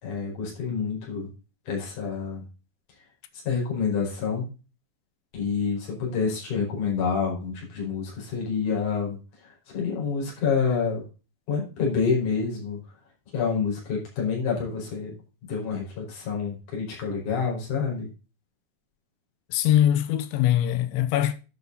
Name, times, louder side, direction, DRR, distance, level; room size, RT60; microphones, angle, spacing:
voice 1, 0.0-1.3 1.7-2.5 3.4-4.5 5.3-9.2 9.4-11.0 11.5-12.8 13.3-15.2 15.5-18.1, left 5 dB, 45° left, 6.0 m, -28 dB
voice 2, 19.5-21.3, left 12 dB, 90° left, 3.3 m, -22 dB
12.0 x 7.1 x 4.0 m
omnidirectional pair, 5.1 m